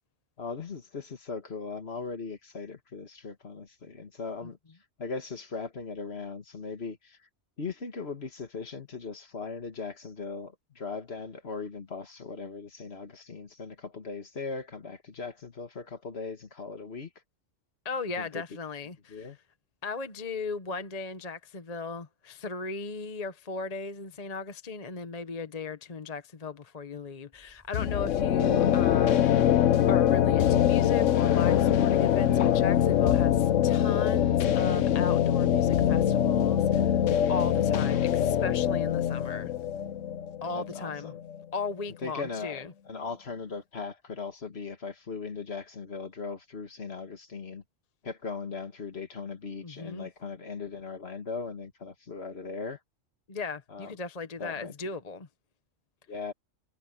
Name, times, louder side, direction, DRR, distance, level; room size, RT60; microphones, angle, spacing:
voice 1, 0.4-4.6 5.0-7.2 7.6-17.1 18.2-18.4 19.1-19.4 32.2-32.5 37.9-38.1 40.5-41.2 42.0-47.6 48.0-52.8 53.7-54.0 54.4-54.7 56.1-56.3, left 4 dB, 55° left, 1.9 m, -39 dB
voice 2, 17.8-19.3 19.8-29.5 29.9-37.0 37.3-39.5 40.4-41.1 41.5-42.7 49.6-50.1 53.3-55.3, left 4 dB, 35° left, 1.0 m, -37 dB
sound 1, 27.3-38.0, equal, 10° right, 5.5 m, -55 dB
sound 2, 27.7-41.4, left 10 dB, 75° left, 1.1 m, -24 dB
omnidirectional pair, 1.3 m